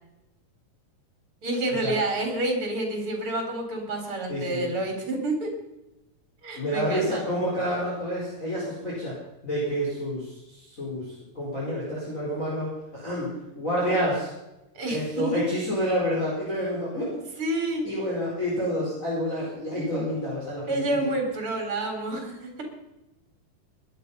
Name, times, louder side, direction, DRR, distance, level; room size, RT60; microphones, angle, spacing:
voice 1, 1.4-5.5 6.4-7.2 14.7-15.3 17.4-17.9 20.7-22.6, right 2 dB, 40° right, 3 dB, 4.9 m, -28 dB
voice 2, 4.3-4.7 6.5-9.1 9.4-13.3 13.5-14.3 14.9-17.1 17.8-20.6, equal, 20° left, -5 dB, 4.8 m, -28 dB
21.5 x 11.5 x 5.6 m, 0.93 s
omnidirectional pair, 3.9 m